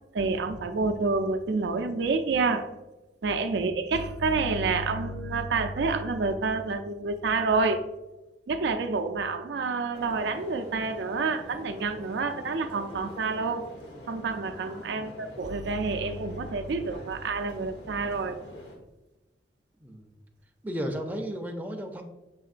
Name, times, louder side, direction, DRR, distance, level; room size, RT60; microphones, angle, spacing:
voice 1, 0.1-2.7 3.2-7.9 8.5-13.7 14.1-18.4, right 4 dB, 85° right, 6 dB, 0.4 m, -28 dB
sound 1, 9.9-18.8, left 1 dB, 85° left, 1.2 m, -46 dB
voice 2, 14.9-15.3 19.8-20.1 20.6-22.0, equal, 10° right, 3 dB, 0.4 m, -34 dB
6.3 x 2.9 x 2.5 m, 1.0 s
head